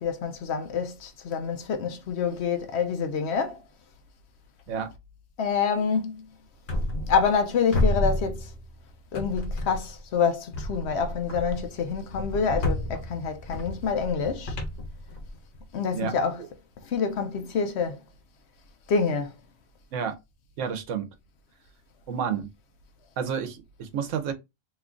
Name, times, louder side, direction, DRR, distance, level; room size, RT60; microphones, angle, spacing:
voice 1, 0.0-3.6 5.4-6.3 7.1-8.5 9.1-14.6 15.7-16.4 16.8-18.0 18.9-19.3, left 6 dB, 65° left, 0.8 m, -27 dB
sound 1, 6.7-7.5 7.7-8.8 9.1-10.0 10.5-15.6, left 1 dB, 85° left, 1.4 m, -30 dB
voice 2, 20.6-21.1 22.1-22.5 23.2-24.3, right 7 dB, 80° right, 1.0 m, -30 dB
3.0 x 2.3 x 3.7 m
omnidirectional pair, 1.3 m